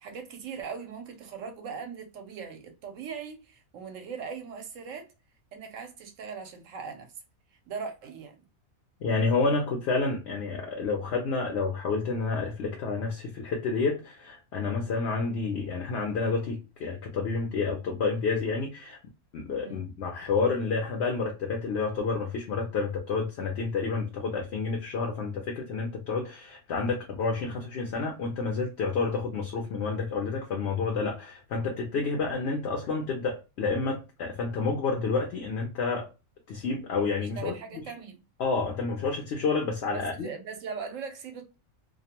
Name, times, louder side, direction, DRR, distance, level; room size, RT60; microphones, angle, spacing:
voice 1, 0.0-5.1 5.5-7.1 7.7-8.5 19.6-19.9 37.4-38.2 39.9-41.6, right 6 dB, 70° right, 1.0 m, -40 dB
voice 2, 9.0-19.0 19.3-36.1 36.5-37.5 38.4-40.3, left 4 dB, 65° left, 0.7 m, -29 dB
2.5 x 2.1 x 2.8 m
omnidirectional pair, 1.4 m